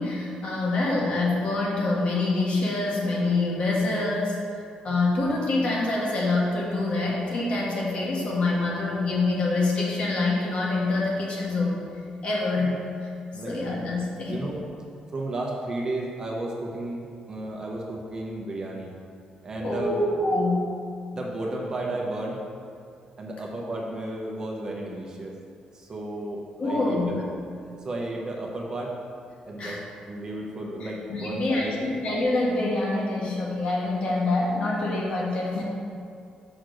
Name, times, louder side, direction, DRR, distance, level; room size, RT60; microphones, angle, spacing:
voice 1, 0.0-4.4 4.8-11.8 12.2-12.8 13.5-14.4 19.6-20.8 26.6-27.1 29.6-29.8 30.8-35.6, left 2 dB, 45° left, -3 dB, 1.5 m, -26 dB
voice 2, 15.1-18.9 19.4-20.0 21.1-22.4 23.2-25.3 25.7-27.0 27.8-29.0 29.5-29.8 30.1-31.9, right 1 dB, 30° right, -2 dB, 0.9 m, -33 dB
6.1 x 4.4 x 6.3 m, 2.4 s
cardioid pair, 165°, 3 cm